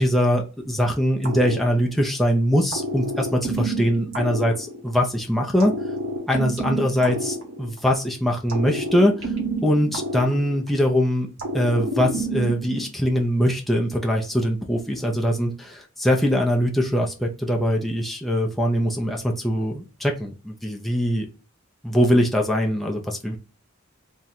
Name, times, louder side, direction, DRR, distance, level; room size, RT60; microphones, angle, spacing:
voice 1, 0.0-5.7 6.3-9.3 9.6-11.3 11.5-21.3 21.8-23.4, equal, ahead, -1 dB, 0.5 m, -22 dB
sound 1, 1.2-2.2 2.7-5.1 5.6-8.0 8.5-10.9 11.4-12.9, right 1 dB, 65° right, 1.1 m, -29 dB
3.7 x 2.2 x 4.3 m, 0.34 s
head